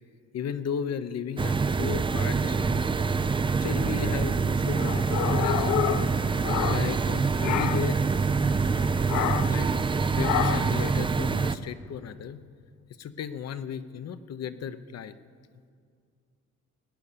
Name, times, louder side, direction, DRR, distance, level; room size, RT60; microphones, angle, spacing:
voice 1, 0.3-2.9 3.6-5.0 5.3-6.1 6.6-8.1 9.5-9.7 10.2-12.4 13.0-15.1, left 7 dB, 55° left, 12 dB, 0.8 m, -35 dB
sound 1, 1.4-11.6, right 4 dB, 15° right, 0.4 m, -25 dB
sound 2, 4.7-7.1 7.4-8.0 9.1-9.6 10.2-10.8, left 14 dB, 75° left, 0.5 m, -29 dB
18.5 x 9.5 x 6.8 m, 2.2 s
cardioid pair, 90°, 30 cm